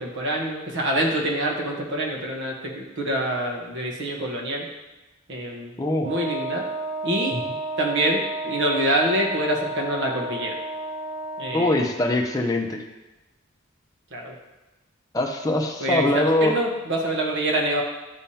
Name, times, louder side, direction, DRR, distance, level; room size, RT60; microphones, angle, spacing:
voice 1, 0.0-4.6 5.3-5.7 6.0-6.6 7.0-7.4 7.8-10.6 11.4-11.9 14.1-14.3 15.8-17.8, right 1 dB, 65° right, 0 dB, 1.1 m, -26 dB
voice 2, 5.8-6.1 7.3-7.4 11.5-12.8 15.1-16.5, left 1 dB, 20° left, 1 dB, 0.6 m, -22 dB
Wind instrument woodwind instrument, 6.0-11.7, right 2 dB, 35° right, 0.7 m, -32 dB
9.9 x 3.4 x 2.8 m, 1.1 s
head